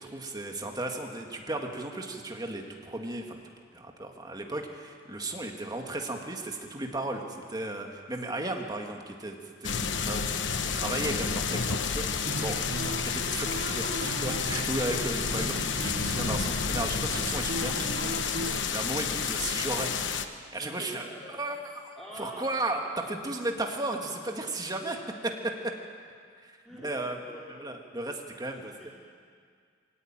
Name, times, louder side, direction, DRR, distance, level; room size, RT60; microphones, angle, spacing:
voice 1, 0.0-3.4 3.7-10.5 10.7-12.6 13.0-21.0 21.4-21.6 22.2-25.7 26.4-26.6 26.8-27.2 27.6-28.9, right 2 dB, 20° right, 2 dB, 2.2 m, -35 dB
sound 1, 9.6-20.3, left 6 dB, 70° left, 1.1 m, -30 dB
sound 2, 12.2-18.6, right 1 dB, 65° right, 1.3 m, -37 dB
voice 2, 20.6-21.4 21.9-22.5 26.6-27.5 28.4-28.9, equal, ahead, -7 dB, 2.9 m, -46 dB
22.5 x 17.5 x 9.2 m, 2.1 s
head